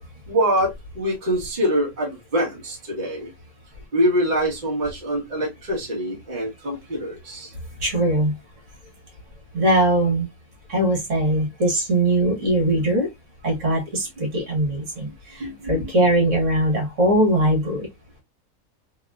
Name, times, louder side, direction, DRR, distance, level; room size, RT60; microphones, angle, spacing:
voice 1, 0.3-3.3 3.9-7.5 15.4-15.9, equal, 30° right, 1.3 m, -24 dB
voice 2, 7.8-8.3 9.5-10.3 10.7-13.1 13.4-17.9, right 1 dB, 55° right, 1.6 m, -21 dB
3.0 x 2.9 x 2.3 m
omnidirectional pair, 1.6 m